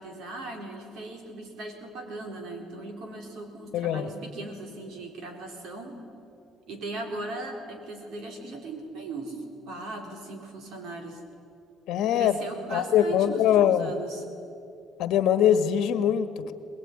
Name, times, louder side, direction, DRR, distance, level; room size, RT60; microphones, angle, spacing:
voice 1, 0.0-6.0 6.7-11.2 12.1-14.2, right 2 dB, 60° right, 3 dB, 4.2 m, -38 dB
voice 2, 3.7-4.1 11.9-12.4 12.7-13.9 15.0-16.5, left 10 dB, 60° left, 11 dB, 1.3 m, -22 dB
21.5 x 21.0 x 9.9 m, 2.7 s
cardioid pair, 175°, 0 cm